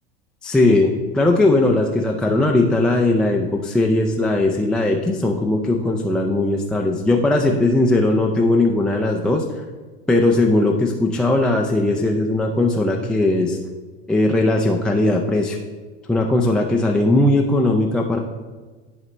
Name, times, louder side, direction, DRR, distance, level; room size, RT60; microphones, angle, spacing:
voice 1, 0.4-9.4 10.1-13.6 14.1-15.6 16.1-18.2, left 2 dB, ahead, -1 dB, 0.4 m, -18 dB
10.5 x 4.0 x 3.2 m, 1.3 s
hypercardioid pair, 110°, 33 cm